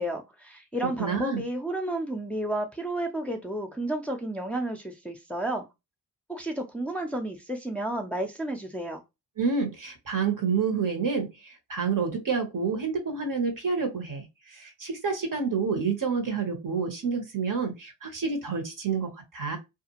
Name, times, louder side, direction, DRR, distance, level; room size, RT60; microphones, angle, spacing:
voice 1, 0.0-5.7 6.3-9.0, right 1 dB, 5° left, 0.7 m, -32 dB
voice 2, 1.0-1.4 9.4-19.6, right 5 dB, 50° right, 1.2 m, -29 dB
2.5 x 2.3 x 2.9 m
supercardioid pair, 45°, 41 cm